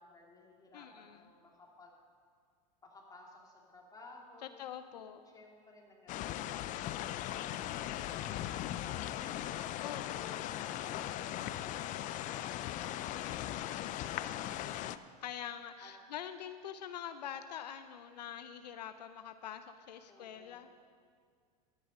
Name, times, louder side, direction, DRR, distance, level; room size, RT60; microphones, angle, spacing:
voice 1, 0.0-1.9 2.8-4.6 5.3-9.8 15.8-15.9 20.1-20.7, left 2 dB, 15° left, -1 dB, 2.6 m, -58 dB
voice 2, 0.7-1.2 4.4-5.2 9.8-10.5 13.2-14.1 15.2-20.7, left 9 dB, 85° left, 10 dB, 0.6 m, -45 dB
sound 1, 6.1-15.0, left 13 dB, 40° left, 0.5 m, -39 dB
12.0 x 9.8 x 5.3 m, 2.1 s
hypercardioid pair, 100°, 21 cm